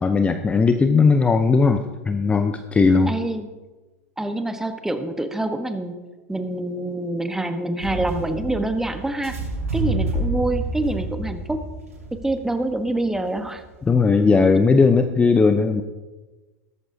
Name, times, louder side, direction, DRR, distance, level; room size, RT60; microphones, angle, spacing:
voice 1, 0.0-3.2 13.9-15.8, left 4 dB, 15° left, 8 dB, 0.7 m, -18 dB
voice 2, 3.1-3.5 4.2-6.0 6.3-9.4 9.7-11.6 12.2-13.6, right 2 dB, 5° right, 8 dB, 1.2 m, -26 dB
sound 1, 7.8-13.9, right 2 dB, 85° right, 4.1 m, -29 dB
16.5 x 14.0 x 2.8 m, 1.2 s
figure-of-eight pair, 90°, 8 cm